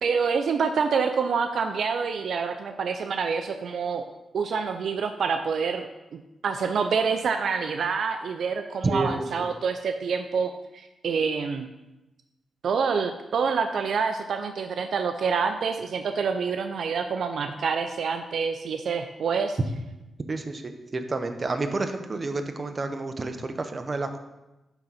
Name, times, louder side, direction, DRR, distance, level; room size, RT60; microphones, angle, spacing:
voice 1, 0.0-4.0 4.3-11.7 12.6-19.6, right 5 dB, 70° right, 7 dB, 0.4 m, -27 dB
voice 2, 8.8-9.2 20.3-24.2, right 3 dB, 35° right, 7 dB, 0.8 m, -29 dB
9.1 x 3.8 x 5.6 m, 1.0 s
cardioid pair, 85°, 0 cm